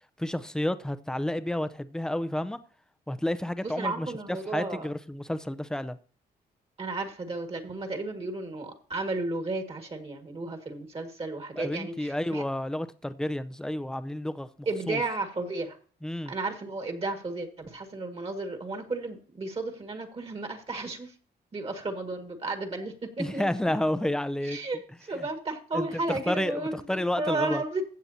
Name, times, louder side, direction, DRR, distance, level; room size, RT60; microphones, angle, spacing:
voice 1, 0.2-2.6 3.1-6.0 11.6-14.5 14.9-15.0 16.0-16.3 23.2-24.6 25.7-27.6, left 1 dB, 5° left, 0.6 m, -30 dB
voice 2, 3.6-4.9 6.8-12.4 14.7-15.8 16.3-21.1 21.5-24.1 24.4-27.8, right 3 dB, 35° right, 1.9 m, -33 dB
15.0 x 7.8 x 2.8 m
cardioid pair, 100°, 17 cm